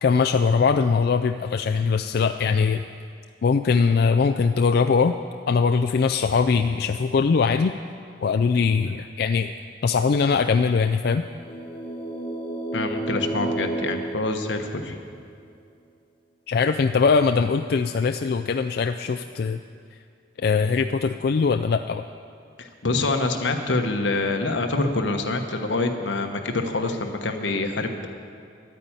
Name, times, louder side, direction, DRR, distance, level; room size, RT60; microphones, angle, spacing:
voice 1, 0.0-2.8 3.4-5.1 5.5-7.7 8.2-9.5 9.8-11.2 16.5-19.6 20.4-22.0, left 5 dB, 55° left, 7 dB, 0.4 m, -21 dB
sound 1, 11.3-15.1, right 1 dB, 30° left, 0.9 m, -31 dB
voice 2, 12.7-15.0 22.6-28.1, left 2 dB, 85° left, 5 dB, 1.2 m, -26 dB
11.5 x 9.2 x 8.9 m, 2.2 s
head